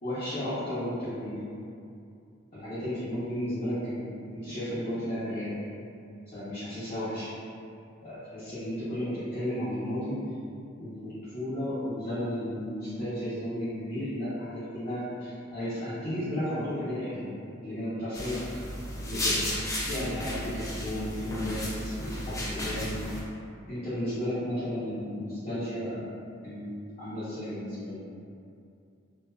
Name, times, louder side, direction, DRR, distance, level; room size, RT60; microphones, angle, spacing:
voice 1, 0.0-1.4 2.5-4.0 4.3-5.5 6.3-7.3 8.0-10.2 10.8-17.3 17.6-18.4 19.0-19.4 19.8-23.0 23.7-26.0 26.4-26.7 27.0-28.0, left 1 dB, 35° left, -18 dB, 0.8 m, -33 dB
sound 1, 18.1-23.2, left 1 dB, 15° left, 0.3 m, -33 dB
2.4 x 2.3 x 2.3 m, 2.5 s
head